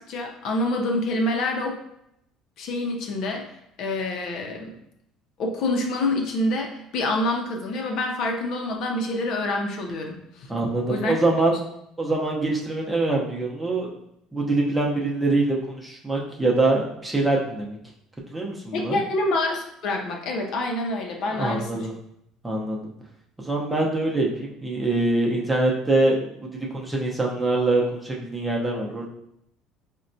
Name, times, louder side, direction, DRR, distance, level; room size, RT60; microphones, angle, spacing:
voice 1, 0.0-1.8 2.6-3.4 3.8-4.8 5.4-10.5 10.9-11.1 18.7-21.9, left 2 dB, 65° left, 1 dB, 0.6 m, -27 dB
voice 2, 10.5-11.6 12.0-13.9 14.3-17.8 18.3-19.0 21.3-21.9 22.4-22.9 23.4-29.1, right 2 dB, 10° right, -2 dB, 0.7 m, -24 dB
3.9 x 2.2 x 2.6 m, 0.77 s
supercardioid pair, 105°, 0 cm